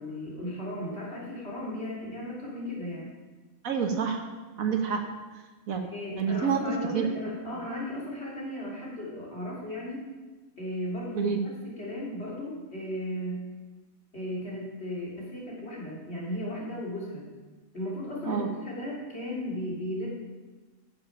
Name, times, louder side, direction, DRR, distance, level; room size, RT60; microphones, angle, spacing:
voice 1, 0.0-3.1 5.8-10.0 10.6-13.4 14.1-17.3 17.7-20.1, left 1 dB, 45° left, -5 dB, 3.0 m, -36 dB
voice 2, 3.6-4.3 4.6-5.0 5.7-5.8 6.2-6.6 6.9-7.1 11.2-11.4 18.3-18.5, right 7 dB, 75° right, 4 dB, 1.5 m, -27 dB
9.3 x 7.2 x 5.7 m, 1.3 s
omnidirectional pair, 1.5 m